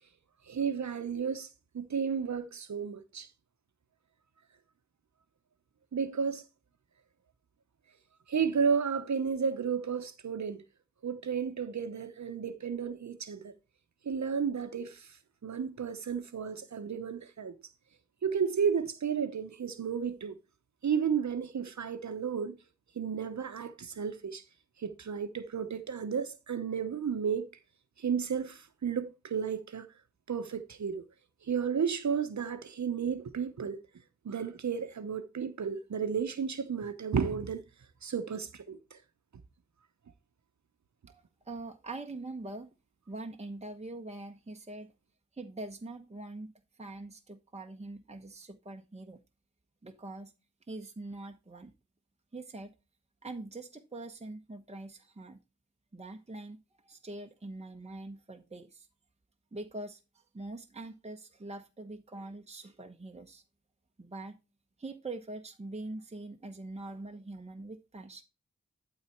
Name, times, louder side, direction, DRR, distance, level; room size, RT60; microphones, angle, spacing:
voice 1, 0.5-1.5 1.7-3.3 5.9-6.4 8.3-10.6 11.0-13.5 14.0-15.2 15.4-17.5 18.2-20.3 20.8-22.6 23.0-24.4 24.8-27.5 28.0-29.9 30.3-31.0 31.5-33.8 34.2-37.6 38.0-39.0, right 6 dB, 70° right, 0.9 m, -32 dB
voice 2, 41.1-42.7 43.1-44.9 45.3-49.2 49.8-50.3 50.7-51.7 52.3-52.7 53.2-55.4 55.9-58.9 59.5-63.4 64.0-64.4 64.8-68.2, right 2 dB, 20° right, 1.0 m, -43 dB
12.0 x 4.0 x 4.5 m
wide cardioid pair, 60°, 29 cm